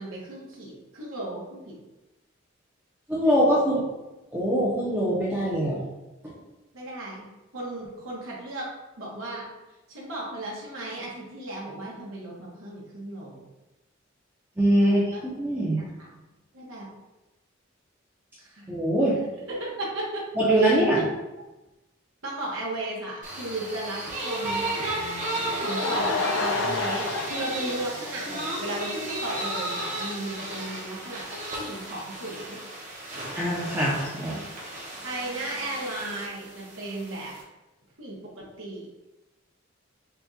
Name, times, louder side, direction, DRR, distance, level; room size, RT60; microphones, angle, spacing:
voice 1, 0.0-1.7 6.7-7.3 7.5-8.7 9.0-9.4 9.9-13.4 14.8-15.2 15.7-16.1 16.5-16.9 18.5-18.7 19.5-20.2 20.6-21.0 22.2-24.6 25.6-32.6 35.0-37.3 38.0-38.9, right 1 dB, 85° right, -4 dB, 1.3 m, -35 dB
voice 2, 3.1-3.8 4.3-5.8 14.6-15.0 15.4-15.8 18.7-19.2 20.4-21.0 33.3-34.4, right 1 dB, 10° right, -7 dB, 0.7 m, -23 dB
sound 1, 23.2-37.4, right 1 dB, 40° right, 1.0 m, -34 dB
Laughter / Crowd, 25.3-28.8 29.1-29.2 29.7-29.8 30.0-30.1, left 3 dB, 75° left, 0.4 m, -30 dB
5.7 x 2.4 x 2.8 m, 1.0 s
head